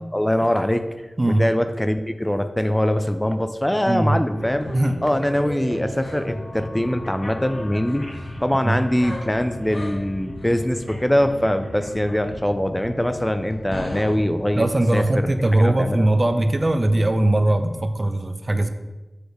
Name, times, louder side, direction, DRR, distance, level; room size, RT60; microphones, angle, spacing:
voice 1, 0.1-0.9 1.4-4.7 5.0-8.1 8.4-14.7 14.9-15.0 15.6-16.1, left 1 dB, 15° left, 9 dB, 0.4 m, -22 dB
sound 1, 4.3-17.9, left 1 dB, 60° left, 1.0 m, -35 dB
voice 2, 4.7-5.0 8.6-8.8 14.6-18.7, right 1 dB, 40° right, 8 dB, 0.5 m, -20 dB
6.4 x 3.4 x 4.8 m, 1.1 s
cardioid pair, 45°, 0 cm